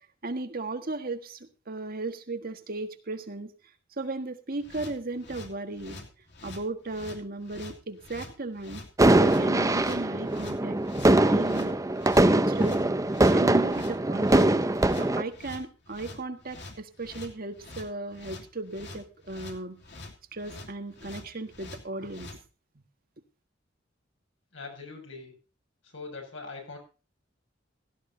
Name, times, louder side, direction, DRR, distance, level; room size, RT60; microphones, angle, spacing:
voice 1, 0.2-3.5 4.0-6.0 6.4-8.8 9.2-10.8 11.1-11.8 12.2-12.9 13.3-14.6 14.9-19.8 20.3-22.3, right 2 dB, 50° right, 7 dB, 1.6 m, -36 dB
sound 1, 4.6-22.4, left 2 dB, 65° left, 2.9 m, -45 dB
sound 2, 9.0-15.2, right 1 dB, 20° right, 0.7 m, -22 dB
voice 2, 24.5-25.3 25.8-26.8, left 3 dB, 90° left, 2 dB, 6.5 m, -42 dB
16.5 x 14.0 x 2.7 m, 0.34 s
head